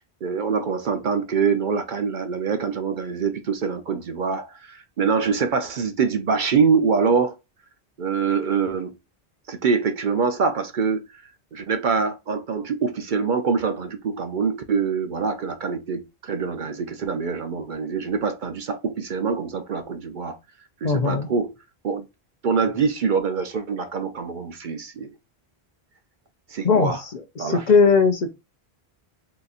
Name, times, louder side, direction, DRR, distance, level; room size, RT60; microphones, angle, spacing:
voice 1, 0.2-7.4 8.0-9.0 9.5-11.2 11.5-20.4 20.8-21.5 21.8-22.0 22.4-25.1 26.5-27.0 27.4-27.7, right 5 dB, 55° right, 0.6 m, -24 dB
voice 2, 20.8-21.3 26.6-28.3, left 4 dB, 50° left, 0.6 m, -19 dB
3.9 x 2.8 x 2.3 m
omnidirectional pair, 1.1 m